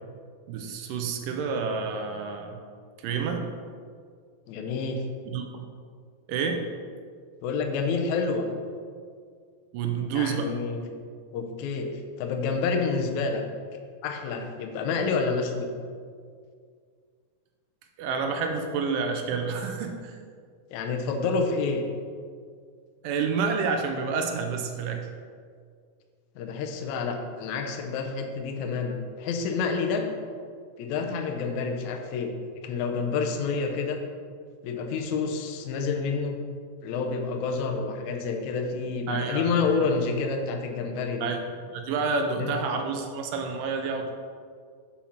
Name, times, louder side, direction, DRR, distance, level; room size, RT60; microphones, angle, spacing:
voice 1, 0.5-2.6 3.0-3.5 5.3-5.4 6.3-6.7 9.7-10.5 18.0-20.2 23.0-25.1 39.1-39.5 39.8-39.9 41.2-41.4 41.7-44.1, right 5 dB, 80° right, 4 dB, 2.2 m, -29 dB
voice 2, 4.5-5.0 7.4-8.4 10.1-10.9 11.3-11.9 12.2-13.4 14.0-15.7 20.7-21.8 26.3-30.1 30.8-32.3 32.6-34.0 34.6-36.4 36.8-41.3 42.4-42.5, left 4 dB, 80° left, 3 dB, 1.7 m, -28 dB
7.2 x 4.3 x 5.7 m, 2.1 s
omnidirectional pair, 4.0 m